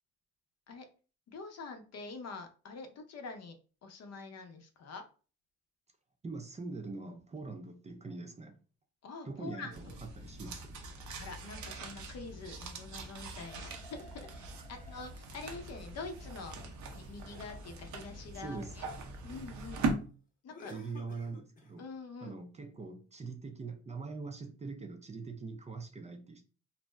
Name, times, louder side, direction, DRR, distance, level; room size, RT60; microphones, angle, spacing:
voice 1, 1.3-3.6 3.8-5.1 9.0-9.9 11.1-16.6 16.9-18.9 19.2-19.9 20.4-20.7 21.8-22.4, left 4 dB, 55° left, 0.7 m, -46 dB
voice 2, 6.2-8.6 9.3-10.8 16.6-16.7 18.3-18.7 20.7-21.8 22.2-26.4, right 4 dB, 20° right, 0.4 m, -43 dB
sound 1, 9.7-19.9, right 3 dB, 70° right, 0.7 m, -41 dB
sound 2, 13.4-15.2 15.9-18.5 20.5-21.9, left 1 dB, 25° left, 0.8 m, -56 dB
2.6 x 2.1 x 3.2 m
cardioid pair, 90°, 30 cm